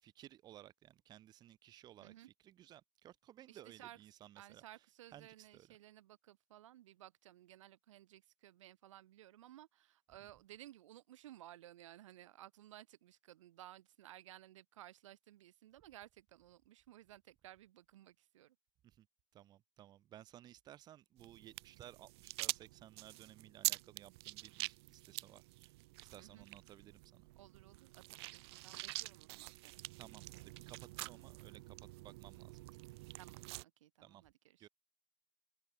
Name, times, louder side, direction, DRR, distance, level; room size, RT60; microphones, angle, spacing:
voice 1, 0.0-4.6 5.1-5.8 18.8-19.1 19.3-25.7 26.0-27.3 30.0-32.7 34.0-34.2 34.6-34.7, right 12 dB, 25° right, 1.3 m, -58 dB
voice 2, 3.5-4.0 4.4-18.6 26.2-26.5 27.4-29.8 33.2-33.4 33.8-34.7, right 13 dB, 90° right, 2.2 m, -58 dB
sound 1, 21.2-33.6, right 22 dB, 60° right, 0.6 m, -46 dB
open air
supercardioid pair, 155°, 16 cm